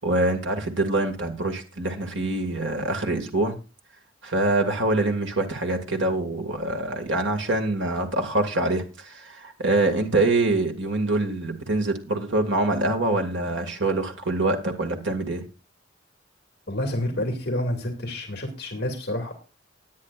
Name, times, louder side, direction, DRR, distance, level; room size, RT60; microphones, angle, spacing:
voice 1, 0.0-3.5 4.2-15.4, right 2 dB, 70° right, 4 dB, 2.0 m, -25 dB
voice 2, 16.7-19.3, left 1 dB, 55° left, 3 dB, 2.3 m, -28 dB
18.0 x 9.8 x 2.4 m, 0.31 s
head